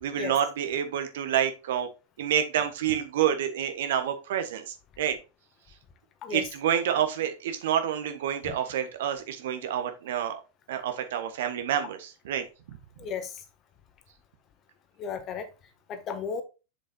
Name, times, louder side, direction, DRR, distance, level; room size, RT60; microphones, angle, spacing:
voice 1, 0.0-1.9 2.2-5.2 6.3-10.4 10.7-12.4, right 9 dB, 55° right, 1.4 m, -28 dB
voice 2, 13.0-13.4 15.0-15.5 15.9-16.4, left 6 dB, 30° left, 1.6 m, -34 dB
7.7 x 7.1 x 2.4 m
figure-of-eight pair, 90°, 0 cm